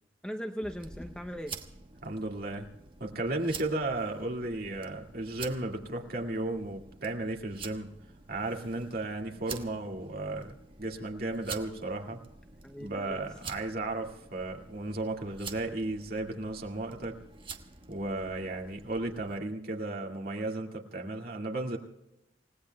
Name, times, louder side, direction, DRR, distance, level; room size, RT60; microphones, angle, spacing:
voice 1, 0.2-1.6 12.6-13.3, equal, 5° left, 4 dB, 0.7 m, -39 dB
sound 1, 0.6-19.4, right 5 dB, 30° right, 1.1 m, -48 dB
voice 2, 2.0-2.7 3.0-7.9 8.3-12.2 12.8-17.2 17.9-21.8, right 2 dB, 55° right, 1 dB, 2.1 m, -34 dB
28.5 x 17.5 x 2.3 m, 0.93 s
head